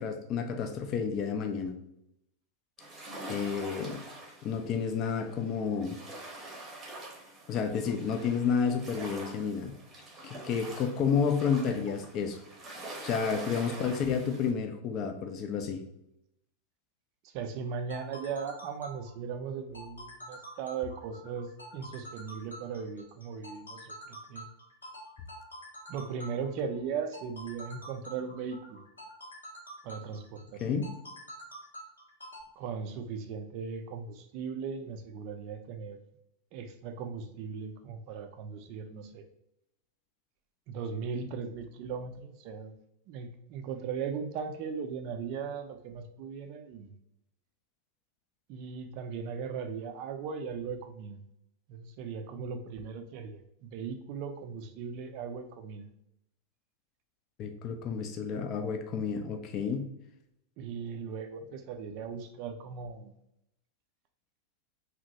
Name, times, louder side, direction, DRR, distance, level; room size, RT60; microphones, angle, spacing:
voice 1, 0.0-1.8 3.3-4.0 4.4-6.0 7.5-9.7 10.2-12.4 13.0-15.8 30.6-30.9 57.4-59.9, left 6 dB, 35° left, 5 dB, 0.4 m, -30 dB
sound 1, 2.8-14.5, right 2 dB, 20° right, 0.8 m, -45 dB
voice 2, 17.2-21.5 21.7-24.5 25.9-28.8 29.8-30.7 32.6-36.0 36.5-39.2 40.7-42.7 43.1-46.9 48.5-51.2 51.7-55.9 60.6-63.1, right 6 dB, 45° right, 7 dB, 0.3 m, -38 dB
sound 2, 17.7-32.4, equal, 75° left, 0.7 m, -47 dB
2.7 x 2.1 x 2.7 m, 0.81 s
figure-of-eight pair, 90°, 0 cm